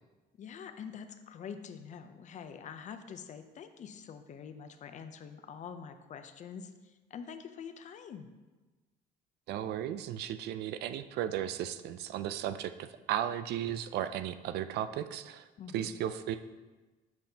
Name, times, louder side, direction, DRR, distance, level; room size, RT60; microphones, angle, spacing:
voice 1, 0.4-8.3 15.6-15.9, left 7 dB, 45° left, 9 dB, 0.5 m, -45 dB
voice 2, 9.5-15.5 15.7-16.4, right 11 dB, 75° right, 12 dB, 0.4 m, -35 dB
7.9 x 5.2 x 2.8 m, 1.2 s
cardioid pair, 110°, 17 cm